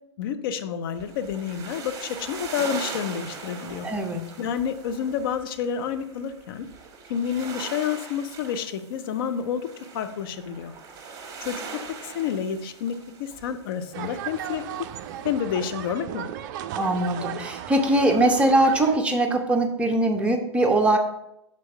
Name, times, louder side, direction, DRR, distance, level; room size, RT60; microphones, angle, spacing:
voice 1, 0.2-3.9 4.4-6.7 7.1-9.7 9.9-10.7 11.4-11.6 12.0-12.9 13.2-14.9 15.2-16.3, left 8 dB, 55° left, 9 dB, 0.6 m, -29 dB
sound 1, 1.0-15.4, right 5 dB, 25° right, 1.4 m, -41 dB
voice 2, 3.8-4.2 16.7-21.0, right 1 dB, 10° right, 2 dB, 0.8 m, -21 dB
sound 2, 13.9-19.0, right 11 dB, 45° right, 0.4 m, -35 dB
6.2 x 4.2 x 4.6 m, 0.81 s
figure-of-eight pair, 100°, 15 cm